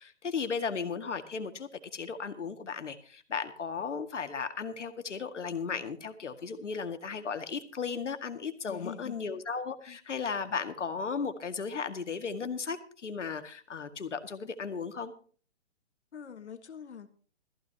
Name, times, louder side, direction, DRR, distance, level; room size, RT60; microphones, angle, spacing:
voice 1, 0.0-15.1, left 5 dB, 85° left, 8 dB, 2.1 m, -35 dB
voice 2, 8.7-9.2 9.9-10.0 16.1-17.1, left 7 dB, 70° left, 9 dB, 1.6 m, -44 dB
18.0 x 14.5 x 2.9 m, 0.42 s
hypercardioid pair, 170°, 35 cm